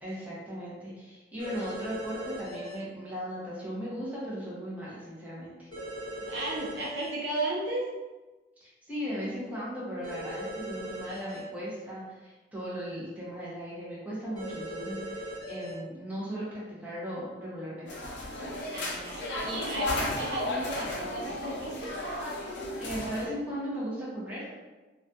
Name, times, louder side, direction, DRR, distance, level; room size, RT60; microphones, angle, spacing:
voice 1, 0.0-5.7 8.6-18.0 22.8-24.5, equal, 10° right, -8 dB, 0.6 m, -37 dB
sound 1, 1.4-2.7 5.7-7.1 10.0-11.4 14.4-15.7, equal, 20° left, 0.9 m, -39 dB
voice 2, 6.3-7.9 18.5-22.0, right 2 dB, 60° right, -4 dB, 0.5 m, -34 dB
sound 2, 17.9-23.3, left 1 dB, 75° left, 0.5 m, -34 dB
2.3 x 2.2 x 2.6 m, 1.2 s
head